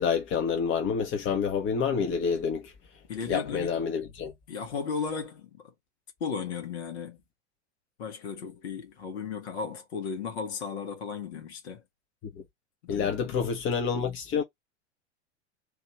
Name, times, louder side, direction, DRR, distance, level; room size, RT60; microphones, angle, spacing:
voice 1, 0.0-2.7 3.3-4.3 12.9-14.4, left 6 dB, 35° left, 1.3 m, -28 dB
voice 2, 3.1-3.9 4.5-5.7 6.2-7.2 8.0-11.8 12.8-13.3, left 6 dB, 70° left, 1.7 m, -35 dB
3.4 x 2.8 x 4.3 m
figure-of-eight pair, 85°, 35 cm